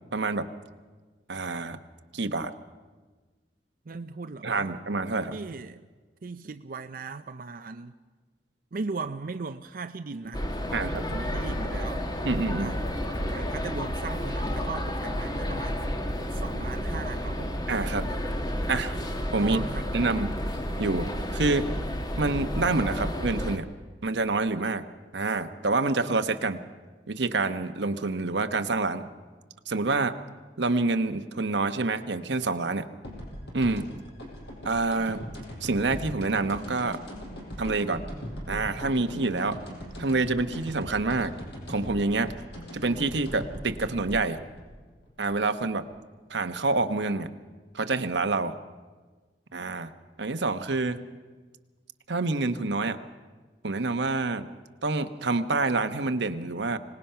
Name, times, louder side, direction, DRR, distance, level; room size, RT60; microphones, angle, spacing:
voice 1, 0.1-0.5 1.3-1.8 2.1-2.5 4.4-5.4 10.7-10.9 12.2-12.7 17.7-18.1 18.7-19.0 19.3-19.6 19.9-20.4 20.8-21.7 22.2-23.7 24.0-24.8 25.1-26.6 27.1-29.1 29.7-30.2 30.6-32.8 33.5-33.9 34.6-35.2 35.6-37.0 37.6-38.0 38.5-39.6 40.0-41.3 41.7-42.3 42.7-44.4 45.2-45.8 46.3-47.3 47.7-48.5 49.5-49.9 50.2-51.0 52.1-53.0 53.6-54.5 54.8-56.8, right 3 dB, 90° right, 9 dB, 1.0 m, -27 dB
voice 2, 3.9-4.7 5.3-5.9 6.2-8.0 8.7-12.1 12.6-12.8 13.3-15.8 16.3-17.6 19.4-20.0, right 4 dB, 50° right, 8 dB, 0.5 m, -38 dB
sound 1, 10.3-23.6, equal, 25° left, 1.3 m, -31 dB
sound 2, 33.0-45.8, equal, 75° left, 5.3 m, -40 dB
25.5 x 19.0 x 5.7 m, 1.4 s
head